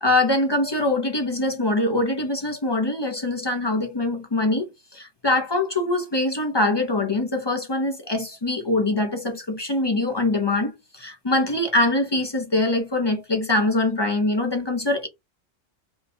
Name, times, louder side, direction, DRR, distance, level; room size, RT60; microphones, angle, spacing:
voice 1, 0.0-15.1, left 2 dB, 30° left, 0.5 m, -23 dB
4.5 x 2.2 x 2.8 m
omnidirectional pair, 1.3 m